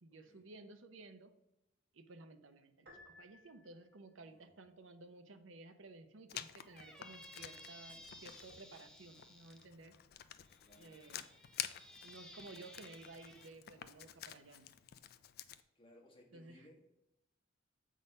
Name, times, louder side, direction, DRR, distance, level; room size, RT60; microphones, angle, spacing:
voice 1, 0.0-1.3 1.9-9.9 10.8-11.2 12.0-14.7 16.3-16.7, right 2 dB, 85° right, 8 dB, 0.7 m, -55 dB
Piano, 2.9-4.1, left 2 dB, 55° right, 1.8 m, -60 dB
voice 2, 4.2-4.6 10.6-11.1 15.7-16.9, left 1 dB, 25° left, -2 dB, 1.6 m, -63 dB
Writing, 6.3-15.6, left 11 dB, 55° left, 0.4 m, -50 dB
Squeak, 6.6-9.6 10.5-13.5, left 1 dB, 5° left, 0.7 m, -57 dB
7.8 x 3.9 x 5.3 m, 0.90 s
head